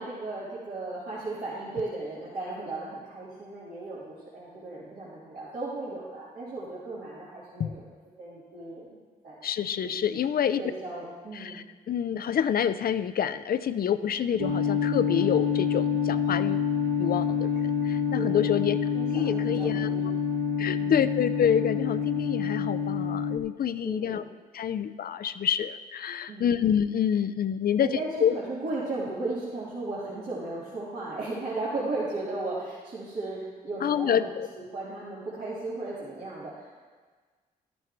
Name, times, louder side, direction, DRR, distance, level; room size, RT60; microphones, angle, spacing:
voice 1, 0.0-7.7 8.2-9.0 9.2-9.4 9.8-10.3 10.6-11.6 18.1-18.5 18.9-20.1 20.6-20.9 23.8-24.2 26.3-26.5 27.8-34.3 34.6-36.7, right 2 dB, 70° right, -11 dB, 3.7 m, -36 dB
voice 2, 9.4-10.6 11.4-16.7 17.0-18.8 19.1-19.9 20.6-24.2 24.5-27.9 28.2-28.3 33.8-34.5, left 8 dB, 65° left, 13 dB, 0.5 m, -27 dB
sound 1, 14.4-23.4, left 6 dB, 90° right, 0.9 m, -27 dB
12.5 x 12.5 x 3.1 m, 1.5 s
supercardioid pair, 50°, 17 cm